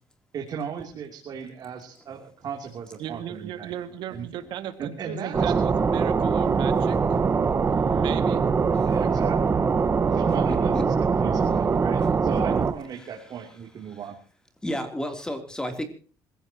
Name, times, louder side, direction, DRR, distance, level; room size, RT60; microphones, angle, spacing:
voice 1, 0.3-3.7 4.1-4.3 4.8-5.5 8.8-9.6 10.1-14.1, right 7 dB, 50° right, 1 dB, 3.1 m, -36 dB
voice 2, 3.0-7.0 7.6-8.4, right 11 dB, 70° right, 8 dB, 2.1 m, -36 dB
sound 1, 5.3-12.7, right 5 dB, 30° right, 1.4 m, -22 dB
voice 3, 14.6-15.8, equal, 10° left, 6 dB, 3.3 m, -31 dB
26.0 x 16.0 x 3.0 m, 0.39 s
cardioid pair, 110°, 8 cm